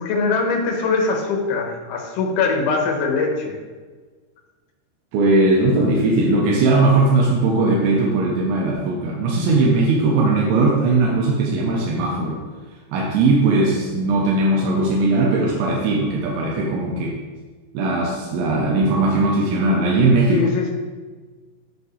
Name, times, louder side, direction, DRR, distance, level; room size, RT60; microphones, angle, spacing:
voice 1, 0.0-3.6 20.3-20.7, left 4 dB, 80° left, 0 dB, 3.6 m, -22 dB
voice 2, 5.1-12.4 12.9-17.2 17.7-20.4, right 2 dB, 85° right, -2 dB, 3.2 m, -19 dB
13.0 x 4.8 x 3.3 m, 1.4 s
omnidirectional pair, 5.4 m